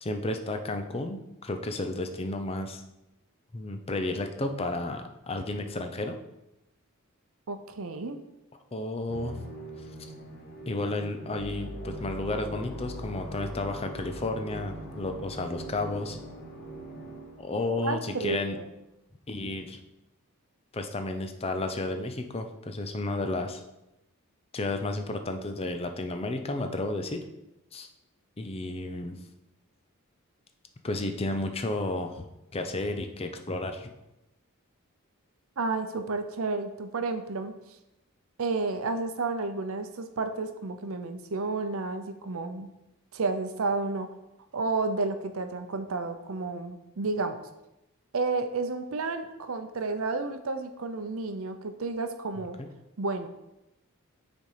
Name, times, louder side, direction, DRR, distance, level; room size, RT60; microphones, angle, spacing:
voice 1, 0.0-2.8 3.5-6.2 8.7-9.4 10.7-16.2 17.4-18.6 19.3-19.8 20.7-23.6 24.5-27.3 27.7-27.9 28.4-29.2 30.8-32.3 32.5-33.9 52.6-52.7, left 2 dB, 25° left, 6 dB, 0.5 m, -32 dB
voice 2, 7.5-8.2 17.8-18.7 35.6-37.5 38.4-42.7 43.1-44.2 44.5-47.5 48.1-52.6 53.0-53.3, right 3 dB, 70° right, 8 dB, 0.6 m, -31 dB
Musical instrument, 9.1-17.6, right 2 dB, 45° left, 1.2 m, -43 dB
sound 1, 11.3-17.8, left 2 dB, 80° left, 0.9 m, -44 dB
6.8 x 4.2 x 4.9 m, 0.92 s
head